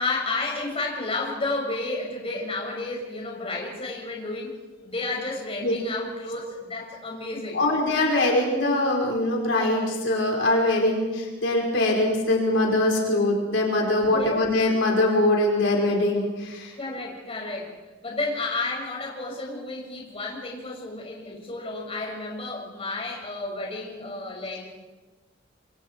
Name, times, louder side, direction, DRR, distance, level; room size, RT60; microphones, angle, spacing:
voice 1, 0.0-4.5 4.8-7.6 14.1-14.4 16.8-17.7 18.0-24.7, left 2 dB, 30° left, -1 dB, 6.5 m, -31 dB
voice 2, 7.5-16.7, left 1 dB, 70° left, -1 dB, 5.2 m, -22 dB
28.0 x 26.5 x 4.7 m, 1.2 s
head